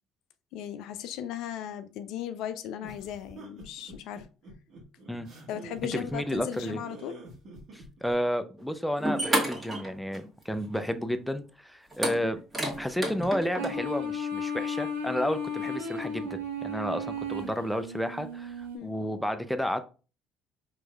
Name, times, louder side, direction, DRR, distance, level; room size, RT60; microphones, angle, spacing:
voice 1, 0.5-4.3 5.5-7.2 18.7-18.9, left 10 dB, 65° left, 0.3 m, -37 dB
sound 1, 2.8-8.1, right 2 dB, 55° right, 1.5 m, -47 dB
voice 2, 5.9-6.8 7.7-12.4 12.8-19.9, equal, 5° left, 0.5 m, -31 dB
sound 2, 8.6-8.7 9.0-10.4 10.7-10.8 11.9-13.7, right 1 dB, 20° right, 1.7 m, -30 dB
sound 3, 13.6-18.8, left 2 dB, 90° right, 0.8 m, -34 dB
4.5 x 3.1 x 2.3 m
hypercardioid pair, 60°, 0 cm